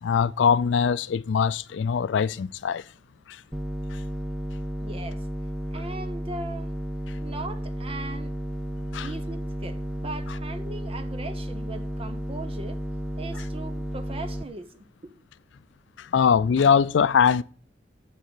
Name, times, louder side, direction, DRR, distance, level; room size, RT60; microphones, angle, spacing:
voice 1, 0.0-2.8 3.3-3.4 3.9-4.0 8.9-9.1 16.0-17.4, left 6 dB, 75° left, 0.4 m, -22 dB
sound 1, 3.5-14.4, right 1 dB, ahead, 0.4 m, -33 dB
voice 2, 4.8-5.3 5.7-6.7 7.2-8.4 9.0-12.8 13.2-15.1, right 2 dB, 30° right, 0.8 m, -39 dB
7.6 x 6.5 x 7.7 m
head